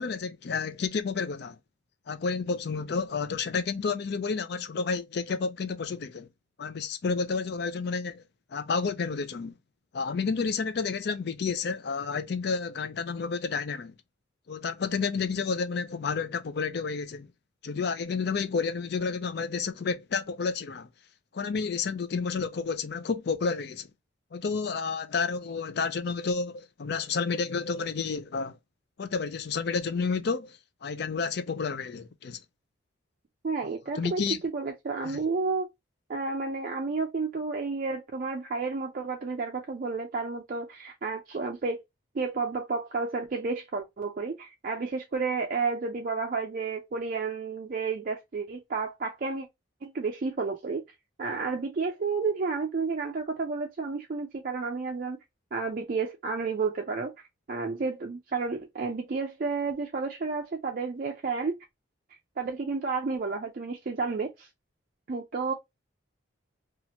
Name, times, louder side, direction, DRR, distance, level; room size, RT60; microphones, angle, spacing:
voice 1, 0.0-1.6 2.1-6.3 6.6-8.2 8.5-9.6 9.9-14.0 14.5-17.3 17.6-20.9 21.3-23.9 24.3-28.6 29.0-32.4 34.0-34.4 35.0-35.2, left 5 dB, 55° left, 0.4 m, -30 dB
voice 2, 33.4-34.2 34.5-35.7 36.1-41.8 42.1-49.5 49.8-50.8 51.2-55.2 55.5-57.1 57.5-61.6 62.4-64.5 65.1-65.5, right 4 dB, 45° right, 0.4 m, -31 dB
2.8 x 2.4 x 2.7 m
head